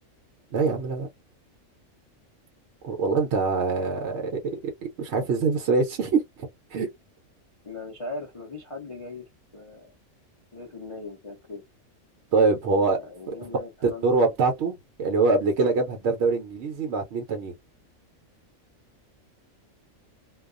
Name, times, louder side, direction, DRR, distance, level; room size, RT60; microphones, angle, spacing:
voice 1, 0.5-1.1 2.8-4.6 5.0-6.9 12.3-13.0 13.8-17.5, right 4 dB, 65° right, 0.8 m, -24 dB
voice 2, 7.6-9.2 9.5-9.9 10.5-11.6 13.0-14.3, left 3 dB, 45° left, 0.4 m, -39 dB
2.3 x 2.3 x 2.4 m
omnidirectional pair, 1.4 m